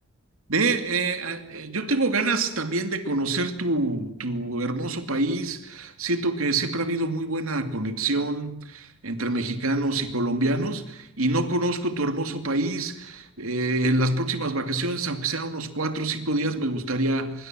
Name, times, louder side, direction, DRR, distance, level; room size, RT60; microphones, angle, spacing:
voice 1, 0.5-17.5, right 2 dB, 75° right, 7 dB, 2.6 m, -26 dB
25.5 x 23.0 x 7.6 m, 0.82 s
head